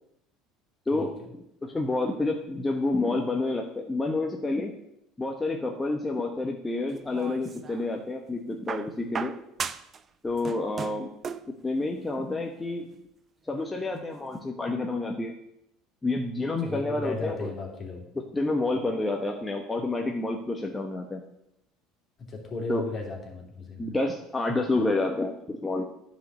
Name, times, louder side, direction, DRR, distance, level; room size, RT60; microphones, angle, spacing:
voice 1, 0.9-1.3 16.6-18.0 22.2-23.9, left 2 dB, 35° left, 1 dB, 2.7 m, -35 dB
voice 2, 1.6-4.7 5.2-9.3 10.2-11.1 11.6-12.9 13.5-15.3 16.0-17.5 18.3-21.2 22.7-22.8 23.8-25.8, left 2 dB, 15° left, 1 dB, 1.2 m, -29 dB
sound 1, 6.9-7.9 8.7-10.0 10.3-11.5 12.6-12.7, right 6 dB, 35° right, 0.6 m, -36 dB
10.0 x 5.2 x 6.8 m, 0.81 s
supercardioid pair, 95°, 0 cm